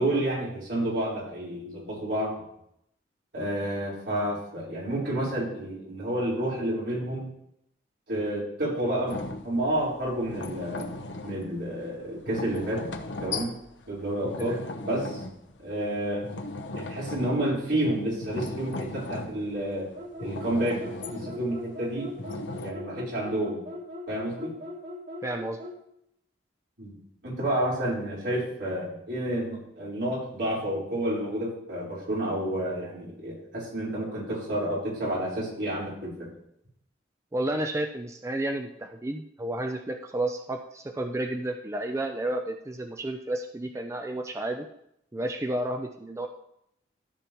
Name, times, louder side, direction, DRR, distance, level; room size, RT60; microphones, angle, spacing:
voice 1, 0.0-2.3 3.3-7.3 8.1-9.2 9.4-10.9 11.2-12.8 13.2-13.5 13.9-15.2 15.6-16.2 16.7-19.9 20.2-20.8 21.1-22.1 22.5-23.6 24.1-24.5 26.8-26.9 27.2-36.3, right 1 dB, 75° right, -6 dB, 4.2 m, -30 dB
sound 1, 9.1-15.9 16.1-17.7 18.0-19.8 20.2-21.5 22.2-22.7, left 2 dB, 85° left, 0.9 m, -38 dB
sound 2, 19.9-25.8, left 1 dB, 55° right, 2.8 m, -40 dB
voice 2, 25.2-25.6 37.3-44.7 45.1-46.3, right 1 dB, 15° right, 5 dB, 0.4 m, -31 dB
13.5 x 7.0 x 3.0 m, 0.77 s
head